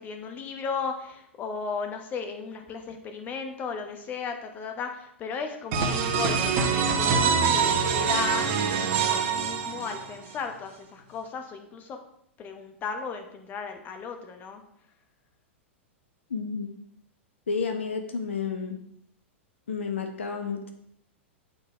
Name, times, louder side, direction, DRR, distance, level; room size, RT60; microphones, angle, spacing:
voice 1, 0.0-8.5 9.0-12.0 12.4-14.6, left 5 dB, 25° left, 5 dB, 1.2 m, -35 dB
sound 1, 5.7-10.3, right 6 dB, 35° right, 1.1 m, -25 dB
voice 2, 16.3-16.8 17.5-18.8 19.7-20.7, left 5 dB, 70° left, 6 dB, 0.9 m, -31 dB
8.9 x 4.6 x 4.9 m, 0.74 s
figure-of-eight pair, 100°, 7 cm